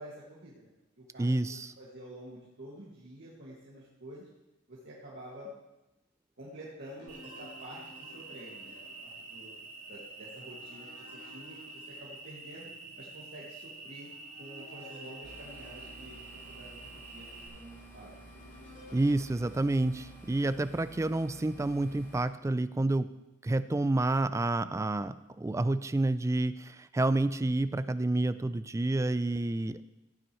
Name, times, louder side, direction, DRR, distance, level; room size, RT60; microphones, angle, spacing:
voice 1, 0.0-1.3 1.8-4.3 4.7-5.5 6.4-9.5 9.9-12.7 13.0-14.1 14.4-16.2 16.5-18.3, right 1 dB, 55° right, -7 dB, 2.1 m, -49 dB
voice 2, 1.2-1.7 18.9-23.1 23.4-29.8, right 2 dB, 15° right, 12 dB, 0.3 m, -29 dB
sound 1, 7.0-12.7 13.3-13.4 14.0-21.2 21.8-22.4, left 2 dB, 60° left, 2.6 m, -58 dB
Cricket, 7.1-17.5, right 3 dB, 80° right, 3.1 m, -47 dB
sound 2, 15.2-22.2, right 1 dB, 15° left, 3.7 m, -52 dB
15.0 x 9.1 x 3.1 m, 0.96 s
head